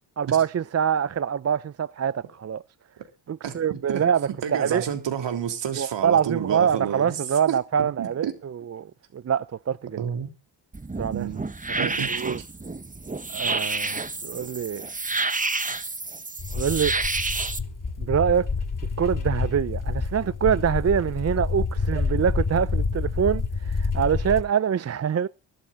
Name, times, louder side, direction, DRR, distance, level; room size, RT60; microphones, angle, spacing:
voice 1, 0.2-2.6 3.3-4.8 5.8-10.0 11.0-11.3 11.8-12.4 13.3-14.9 16.6-16.9 18.0-18.5 19.0-25.3, right 8 dB, 35° right, 0.6 m, -25 dB
voice 2, 3.4-4.1 4.4-7.2 7.5-7.6 8.0-8.3 10.0-10.3 11.1-11.4 11.8-12.1, right 8 dB, 70° right, 3.5 m, -30 dB
sound 1, 10.7-17.6, right 3 dB, 15° right, 1.4 m, -29 dB
sound 2, 16.4-24.4, left 4 dB, 45° left, 7.1 m, -28 dB
24.0 x 12.0 x 2.6 m
supercardioid pair, 50°, 45 cm